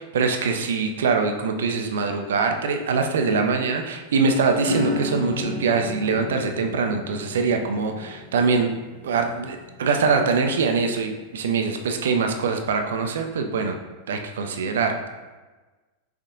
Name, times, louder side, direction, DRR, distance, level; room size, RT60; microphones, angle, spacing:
voice 1, 0.0-8.7 9.0-13.8 14.1-15.0, right 4 dB, 60° right, 5 dB, 0.4 m, -23 dB
Acoustic guitar / Strum, 4.6-10.8, left 2 dB, 80° left, 1.2 m, -33 dB
5.6 x 3.5 x 2.5 m, 1.2 s
figure-of-eight pair, 90°, 0 cm